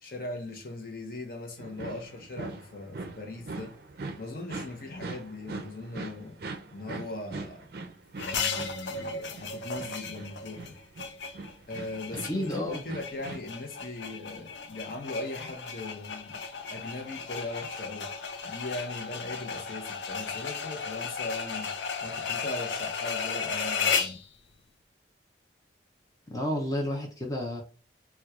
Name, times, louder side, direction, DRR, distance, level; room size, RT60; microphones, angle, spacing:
voice 1, 0.0-3.7 4.2-6.4 6.7-7.7 8.2-10.8 11.7-16.4 16.7-18.1 18.4-21.7 22.0-24.2, left 2 dB, 50° left, 0.7 m, -39 dB
sound 1, 1.6-13.4, right 3 dB, 55° right, 0.4 m, -42 dB
sound 2, 8.2-24.2, left 5 dB, 85° left, 0.5 m, -35 dB
voice 2, 12.1-12.8 26.3-27.6, left 1 dB, 20° left, 0.5 m, -31 dB
4.3 x 2.3 x 2.3 m
head